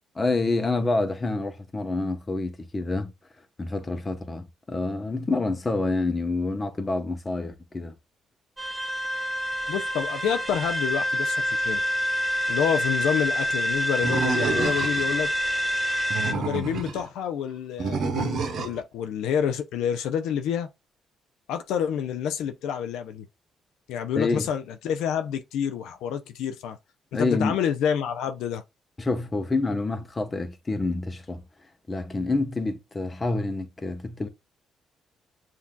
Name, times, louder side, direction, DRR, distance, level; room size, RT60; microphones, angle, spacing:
voice 1, 0.2-3.1 3.6-7.9 24.2-24.5 27.1-27.6 29.0-31.4 31.9-34.3, left 3 dB, 25° left, 0.9 m, -27 dB
sound 1, 8.6-16.3, equal, 20° right, 0.7 m, -27 dB
voice 2, 9.7-11.8 12.5-15.3 16.2-20.7 21.5-23.3 23.9-26.8 27.1-28.6, left 8 dB, 90° left, 0.4 m, -28 dB
Animal, 14.0-15.2 15.9-17.0 17.8-18.8, right 4 dB, 65° right, 1.0 m, -28 dB
7.3 x 2.7 x 2.3 m
cardioid pair, 90°, 0 cm